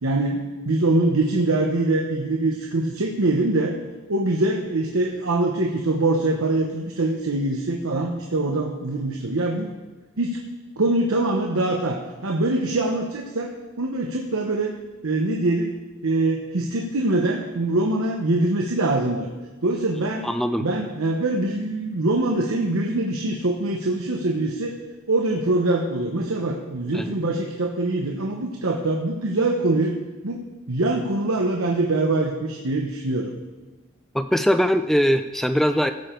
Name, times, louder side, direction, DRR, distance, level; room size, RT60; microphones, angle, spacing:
voice 1, 0.0-3.7 4.1-9.7 10.2-10.4 10.8-13.5 13.8-14.8 15.0-15.7 16.0-19.3 19.6-20.3 20.6-24.7 25.1-30.0 30.2-30.4 30.7-33.3, right 2 dB, 85° right, 1 dB, 1.0 m, -23 dB
voice 2, 20.2-20.7 26.9-27.1 34.1-35.9, equal, ahead, 8 dB, 0.3 m, -21 dB
15.5 x 7.0 x 4.5 m, 1.2 s
head